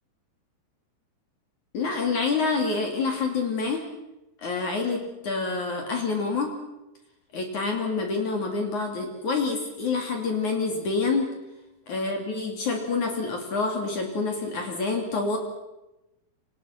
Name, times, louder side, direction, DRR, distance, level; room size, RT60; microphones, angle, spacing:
voice 1, 1.7-3.8 4.4-6.5 7.3-11.3 11.9-15.4, left 4 dB, 50° left, 3 dB, 4.1 m, -27 dB
29.0 x 26.5 x 6.0 m, 0.97 s
omnidirectional pair, 4.8 m